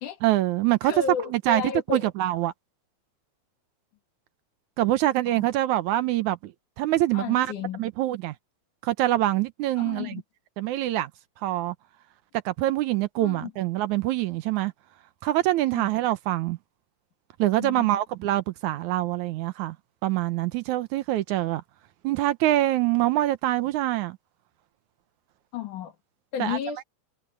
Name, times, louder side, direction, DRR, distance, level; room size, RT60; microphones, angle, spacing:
voice 1, 0.2-1.6 1.9-2.5 4.8-6.5 6.8-7.5 7.8-8.3 8.8-10.2 10.6-11.1 11.4-11.8 12.5-14.7 15.2-16.6 17.4-19.8 20.0-21.6 22.0-24.2 26.4-26.6, right 15 dB, 75° right, 2.2 m, -25 dB
voice 2, 0.8-2.0 5.3-5.5 7.1-7.8 9.8-10.2 13.2-13.5 15.7-15.9 17.6-18.0 25.5-25.9 26.3-26.8, left 8 dB, 80° left, 3.6 m, -33 dB
omnidirectional pair, 3.6 m